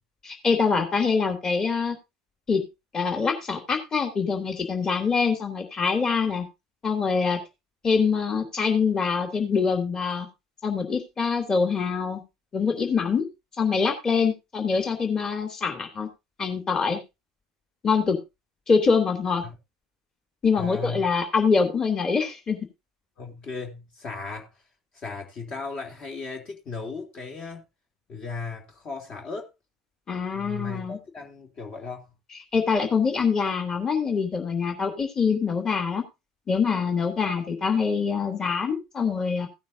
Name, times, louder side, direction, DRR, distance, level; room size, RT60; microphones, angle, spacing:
voice 1, 0.2-2.0 2.5-2.7 2.9-6.4 6.8-7.4 7.8-10.3 10.6-12.2 12.5-13.2 13.6-16.1 16.4-17.0 17.8-18.2 18.7-19.4 20.4-22.7 30.1-31.0 32.5-36.0 36.5-39.5, left 5 dB, 25° left, 3.1 m, -24 dB
voice 2, 20.6-21.1 23.2-24.5 24.9-27.6 28.1-29.5 30.3-32.1, left 4 dB, 45° left, 3.2 m, -36 dB
17.0 x 9.4 x 2.8 m
figure-of-eight pair, 70°, 2 cm